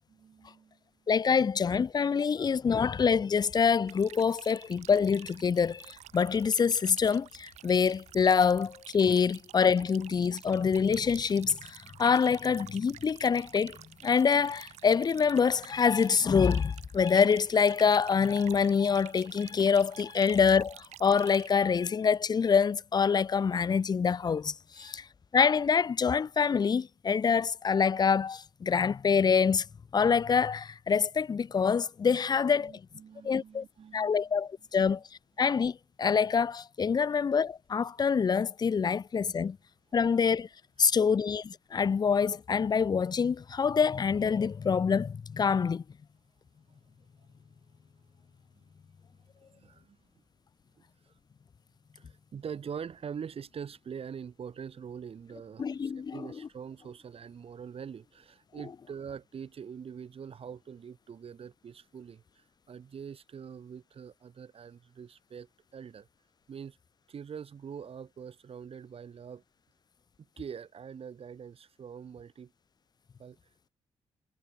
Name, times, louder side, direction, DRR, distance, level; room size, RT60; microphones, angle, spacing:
voice 1, 0.1-0.8 20.2-20.3 24.7-25.0 32.6-34.3 34.7-34.9 40.8-40.9 47.2-47.3 48.5-48.7 49.5-50.0 52.0-66.1 66.5-66.8 67.1-69.4 70.4-72.5 73.2-73.4, right 7 dB, 60° right, 7.5 m, -44 dB
voice 2, 1.1-13.8 14.0-24.5 24.8-25.0 25.3-29.6 29.9-32.7 33.2-33.6 33.9-35.0 35.4-39.6 39.9-40.5 40.8-45.8 55.6-56.2, left 6 dB, 35° left, 0.5 m, -26 dB
sound 1, 3.9-21.6, right 13 dB, 85° right, 5.3 m, -50 dB
supercardioid pair, 60°, 11 cm